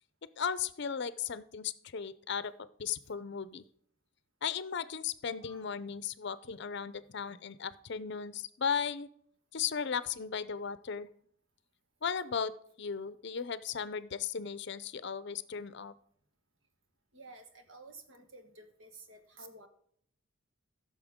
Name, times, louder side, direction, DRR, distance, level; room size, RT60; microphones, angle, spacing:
voice 1, 0.4-2.5 2.8-3.6 4.4-9.1 9.5-11.1 12.0-15.9, left 7 dB, 55° left, 15 dB, 0.5 m, -36 dB
voice 2, 17.1-19.7, right 2 dB, 70° right, 7 dB, 1.6 m, -52 dB
15.0 x 6.7 x 3.6 m, 0.65 s
head